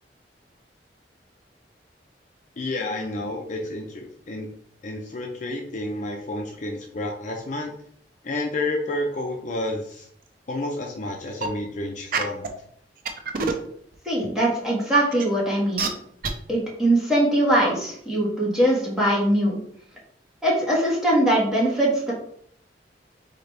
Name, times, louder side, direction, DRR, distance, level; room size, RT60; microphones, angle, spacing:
voice 1, 2.6-4.5 4.8-7.7 8.2-10.1 10.5-12.5, left 2 dB, 45° left, 1 dB, 0.6 m, -30 dB
sound 1, 11.3-11.5 12.1-12.5 13.0-13.7 14.2-14.3 15.1-15.2 15.8-15.9 16.2-16.3, right 5 dB, 55° right, 0.6 m, -25 dB
voice 2, 14.0-15.9 16.5-19.6 20.4-22.1, right 1 dB, 5° right, -6 dB, 1.6 m, -21 dB
4.0 x 4.0 x 3.3 m, 0.65 s
head